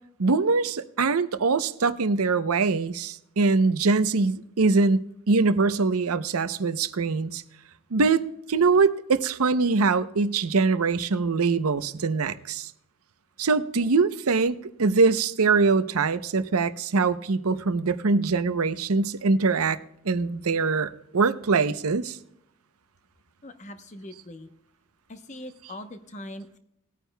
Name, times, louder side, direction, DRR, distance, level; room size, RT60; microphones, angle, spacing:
voice 1, 0.2-7.4 7.9-8.2 8.5-12.7 13.4-19.8 20.1-22.2, right 4 dB, 80° right, 0.7 m, -23 dB
voice 2, 23.4-24.5 25.1-26.6, left 1 dB, 30° left, 0.8 m, -41 dB
19.5 x 9.2 x 2.2 m
head